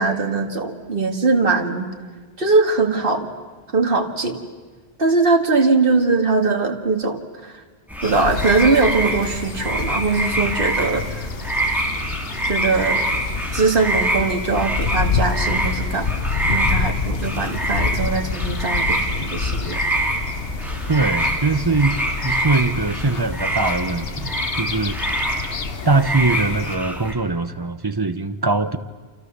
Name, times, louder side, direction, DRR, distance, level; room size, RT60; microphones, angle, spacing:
voice 1, 0.0-1.9 2.4-3.3 3.7-4.4 5.0-7.5 8.0-11.3 12.5-13.1 13.5-19.8, right 3 dB, 60° right, 4 dB, 2.2 m, -21 dB
sound 1, 7.9-27.1, right 1 dB, ahead, 3.9 m, -26 dB
sound 2, 8.0-26.8, left 5 dB, 65° left, 1.5 m, -28 dB
voice 2, 20.9-22.0 22.2-24.3 24.6-25.0 25.8-28.8, right 3 dB, 25° right, 11 dB, 1.0 m, -21 dB
28.5 x 28.5 x 6.8 m, 1.4 s
omnidirectional pair, 1.1 m